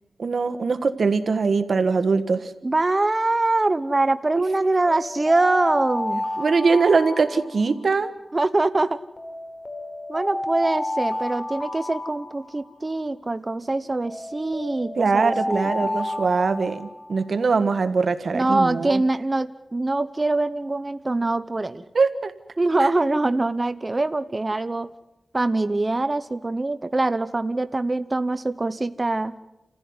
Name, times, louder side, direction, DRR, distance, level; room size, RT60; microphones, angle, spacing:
voice 1, 0.2-2.5 4.3-4.4 6.4-8.1 15.0-19.0 21.9-22.3 22.8-22.9, right 4 dB, 75° right, 10 dB, 1.5 m, -22 dB
voice 2, 2.6-6.2 8.3-9.0 10.1-16.0 18.3-21.8 22.6-24.9 25.3-29.4, right 2 dB, 35° right, 11 dB, 1.0 m, -24 dB
sound 1, 4.9-8.0 9.2-12.9 14.0-17.3, left 1 dB, 40° left, 4.2 m, -31 dB
29.0 x 15.0 x 9.6 m, 0.91 s
cardioid pair, 55°, 0 cm